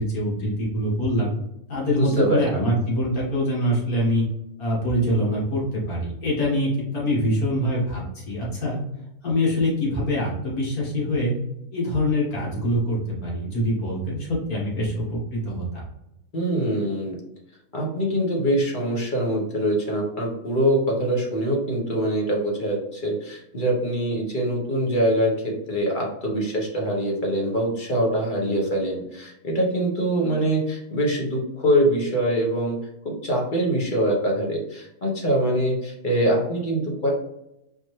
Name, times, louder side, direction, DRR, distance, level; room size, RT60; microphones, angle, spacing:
voice 1, 0.0-1.3 1.7-4.2 4.6-8.8 9.2-11.3 11.7-15.8, equal, 75° left, -5 dB, 2.0 m, -24 dB
voice 2, 1.9-2.6 16.3-17.2 17.7-32.8 33.0-37.1, right 1 dB, 35° left, -2 dB, 1.0 m, -24 dB
4.4 x 2.8 x 3.1 m, 0.87 s
omnidirectional pair, 1.6 m